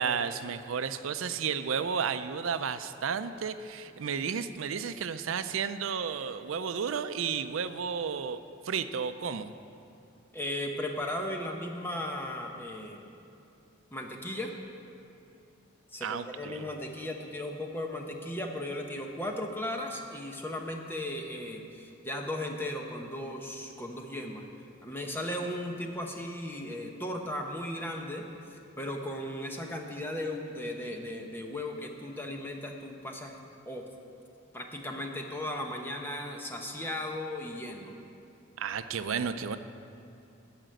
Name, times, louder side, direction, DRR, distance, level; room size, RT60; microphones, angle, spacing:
voice 1, 0.0-8.4 8.6-9.5 16.0-16.6 38.6-39.6, right 6 dB, 80° right, 11 dB, 0.5 m, -32 dB
voice 2, 10.3-13.0 13.9-14.5 15.9-24.4 24.8-33.4 33.7-33.8 34.5-37.9, left 1 dB, 10° left, 2 dB, 0.9 m, -36 dB
14.0 x 5.1 x 9.0 m, 2.6 s
head